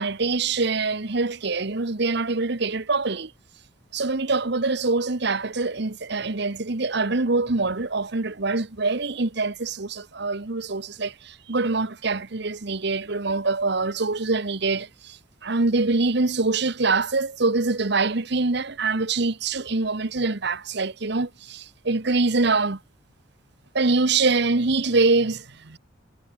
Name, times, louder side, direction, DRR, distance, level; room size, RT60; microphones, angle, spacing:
voice 1, 0.0-3.3 3.9-22.8 23.7-25.8, right 3 dB, 60° right, 1.2 m, -24 dB
head